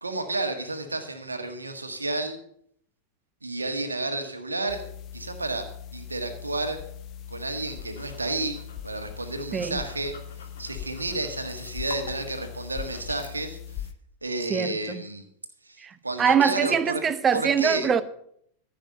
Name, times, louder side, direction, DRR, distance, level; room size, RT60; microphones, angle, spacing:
voice 1, 0.0-2.4 3.4-4.8 5.1-5.7 5.9-6.8 7.3-10.2 10.6-13.9 14.2-15.2 15.6-17.0 17.3-17.9, right 2 dB, 80° right, 1.6 m, -31 dB
sound 1, 4.7-13.9, left 9 dB, 35° left, 0.8 m, -40 dB
sound 2, 7.5-13.3, left 5 dB, 60° left, 2.5 m, -48 dB
voice 2, 14.5-15.0 15.8-18.0, right 7 dB, 20° right, 0.8 m, -24 dB
14.0 x 6.0 x 6.8 m
figure-of-eight pair, 90°, 0 cm